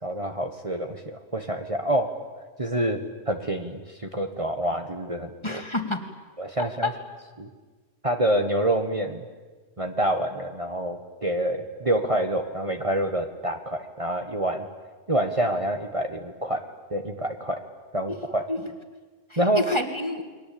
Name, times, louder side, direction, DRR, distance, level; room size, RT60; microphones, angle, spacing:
voice 1, 0.0-2.1 2.6-3.0 3.3-5.6 6.4-6.9 7.4-7.5 8.0-9.2 9.8-14.6 15.1-16.6 16.9-17.6 17.9-18.5 19.4-19.6, right 1 dB, 25° right, 5 dB, 1.6 m, -27 dB
voice 2, 5.4-6.1 6.8-6.9 18.1-18.2 18.5-18.6 19.3-20.2, left 2 dB, 20° left, 6 dB, 2.4 m, -28 dB
30.0 x 22.5 x 8.8 m, 1.3 s
omnidirectional pair, 1.3 m